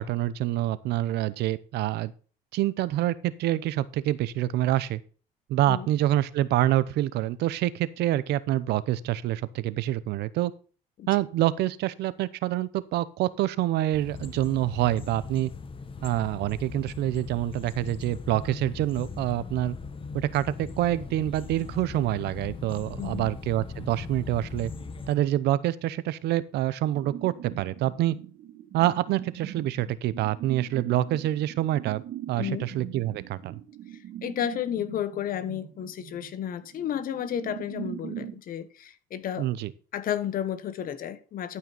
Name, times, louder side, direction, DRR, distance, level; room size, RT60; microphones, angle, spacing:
voice 1, 0.0-2.1 2.5-5.0 5.5-10.5 11.1-15.5 16.0-19.7 20.1-24.7 25.1-28.2 28.7-33.6 39.4-39.7, right 14 dB, 80° right, 0.7 m, -26 dB
sound 1, 13.9-25.1, left 4 dB, 30° left, 1.2 m, -40 dB
voice 2, 23.0-23.3 32.4-32.7 34.2-39.5 39.9-41.6, left 10 dB, 55° left, 1.1 m, -32 dB
sound 2, 26.9-38.4, right 11 dB, 60° right, 1.2 m, -41 dB
12.5 x 5.7 x 4.0 m
cardioid pair, 110°, 17 cm